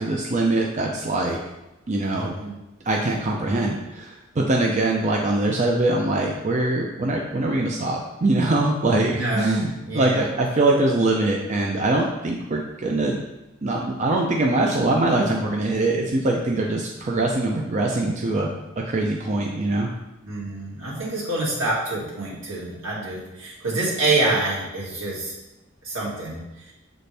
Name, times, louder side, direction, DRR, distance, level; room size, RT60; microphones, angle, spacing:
voice 1, 0.0-1.4 1.9-2.3 2.8-13.2 13.6-18.5 18.8-19.9, right 2 dB, 35° right, 0 dB, 0.5 m, -23 dB
voice 2, 2.1-2.5 9.1-10.2 20.2-25.3 25.8-26.4 26.6-26.7, right 2 dB, 80° right, -6 dB, 2.2 m, -26 dB
7.4 x 4.2 x 3.4 m, 0.97 s
head